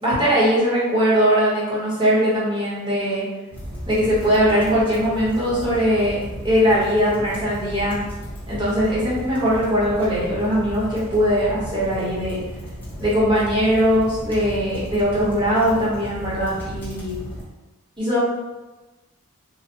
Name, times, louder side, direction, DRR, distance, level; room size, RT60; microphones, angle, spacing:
voice 1, 0.0-3.2 3.9-6.2 6.4-8.0 8.5-12.4 13.0-17.2 18.0-18.2, equal, 20° right, -8 dB, 1.0 m, -20 dB
sound 1, 3.5-17.4, equal, 10° left, 0.7 m, -35 dB
3.2 x 2.1 x 2.8 m, 1.1 s
head